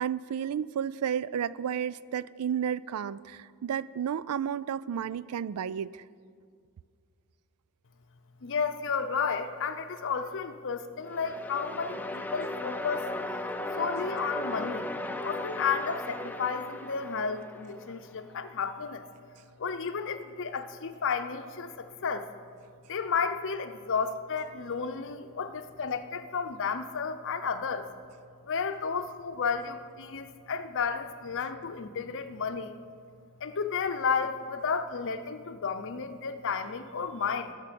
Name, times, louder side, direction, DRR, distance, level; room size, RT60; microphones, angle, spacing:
voice 1, 0.0-6.0, right 8 dB, 75° right, 18 dB, 0.3 m, -32 dB
voice 2, 8.4-13.1 13.4-13.5 13.8-14.9 15.2-19.1 19.6-22.3 22.9-27.9 28.5-32.8 33.4-37.5, left 5 dB, 60° left, 9 dB, 0.7 m, -32 dB
sound 1, 11.0-18.1, left 1 dB, 10° left, 0.5 m, -36 dB
17.5 x 5.9 x 6.9 m, 2.2 s
head